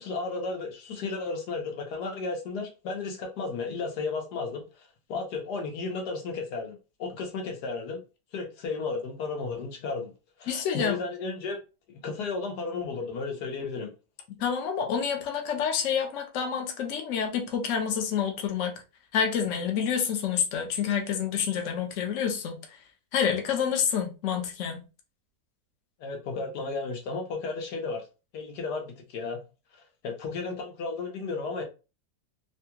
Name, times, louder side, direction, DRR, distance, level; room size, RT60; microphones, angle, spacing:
voice 1, 0.0-8.0 8.3-10.1 10.4-11.6 11.9-13.9 26.0-28.0 28.3-29.4 30.0-31.6, left 4 dB, 85° left, 1.4 m, -34 dB
voice 2, 10.5-11.0 14.4-18.8 19.1-22.6 23.1-24.8, left 7 dB, 60° left, 0.9 m, -28 dB
3.4 x 2.3 x 2.8 m
omnidirectional pair, 1.7 m